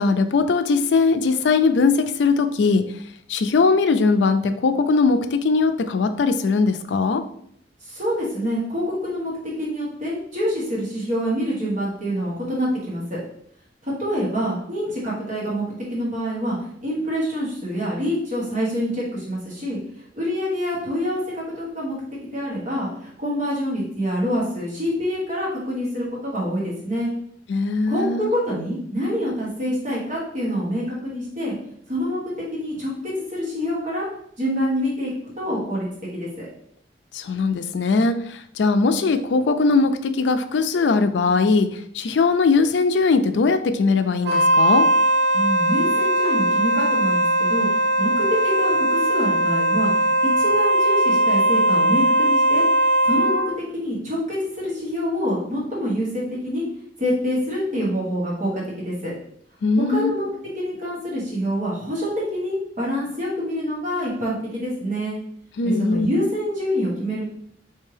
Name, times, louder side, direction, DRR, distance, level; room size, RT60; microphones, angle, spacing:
voice 1, 0.0-2.9 3.3-7.2 27.5-28.3 37.1-44.9 59.6-60.1 65.6-66.1, left 4 dB, 75° left, 10 dB, 0.4 m, -20 dB
voice 2, 7.8-13.2 13.8-16.6 16.8-19.8 20.1-22.0 22.3-27.1 27.9-31.5 31.9-32.2 32.5-34.0 34.4-35.9 36.1-36.5 45.3-52.6 53.0-56.6 57.0-59.1 59.9-60.3 60.5-65.2 65.6-67.3, equal, 45° right, -6 dB, 1.4 m, -26 dB
Wind instrument woodwind instrument, 44.2-53.5, right 1 dB, 90° right, 0.7 m, -19 dB
4.4 x 3.3 x 3.2 m, 0.69 s
head